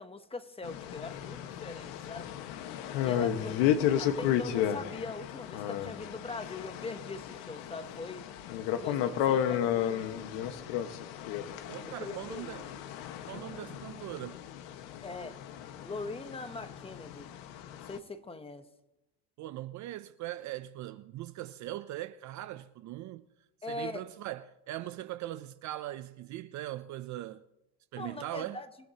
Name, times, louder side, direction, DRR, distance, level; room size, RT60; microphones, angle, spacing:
voice 1, 0.0-2.3 3.0-8.3 8.6-10.9 11.8-12.6 13.3-13.6 15.0-15.4 15.8-17.3 17.7-18.7 23.6-24.0 28.0-28.7, left 3 dB, 15° left, 0.8 m, -42 dB
sound 1, 0.6-18.0, left 10 dB, 75° left, 1.4 m, -33 dB
voice 2, 11.7-12.7 13.3-14.4 19.4-23.2 23.7-27.4 27.9-28.6, right 14 dB, 40° right, 0.5 m, -40 dB
27.0 x 16.5 x 2.8 m
cardioid pair, 145°, 45 cm